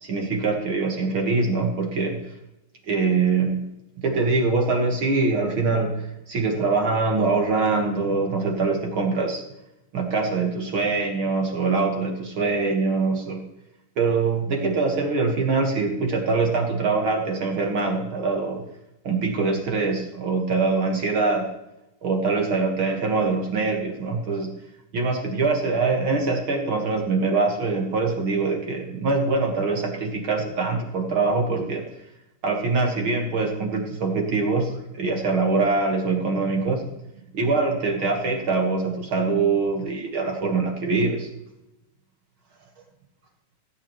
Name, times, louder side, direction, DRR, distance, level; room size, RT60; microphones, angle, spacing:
voice 1, 0.0-2.2 2.9-3.6 4.0-9.4 9.9-13.4 14.0-18.6 19.0-21.5 22.0-24.5 24.9-31.8 32.4-36.9 37.3-41.3, right 4 dB, 45° right, 2 dB, 2.0 m, -23 dB
17.0 x 9.3 x 3.2 m, 0.91 s
omnidirectional pair, 3.9 m